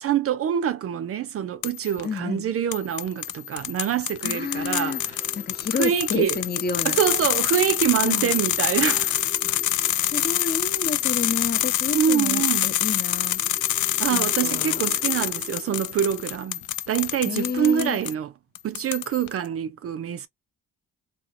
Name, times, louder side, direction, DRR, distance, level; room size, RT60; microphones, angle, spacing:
voice 1, 0.0-5.0 5.7-6.4 6.8-9.2 11.9-12.7 14.0-16.6 16.9-18.3 18.6-20.3, right 9 dB, 50° right, 0.5 m, -25 dB
sound 1, 1.6-2.0 2.7-18.1 18.6-19.3, left 14 dB, 75° left, 0.5 m, -26 dB
voice 2, 2.0-2.5 4.2-5.0 5.3-7.0 8.0-8.3 9.4-13.4 14.1-14.8 17.2-18.0, left 5 dB, 35° left, 0.7 m, -30 dB
sound 2, 4.5-16.4, left 3 dB, 5° left, 0.9 m, -47 dB
2.8 x 2.4 x 2.5 m
cardioid pair, 90°, 30 cm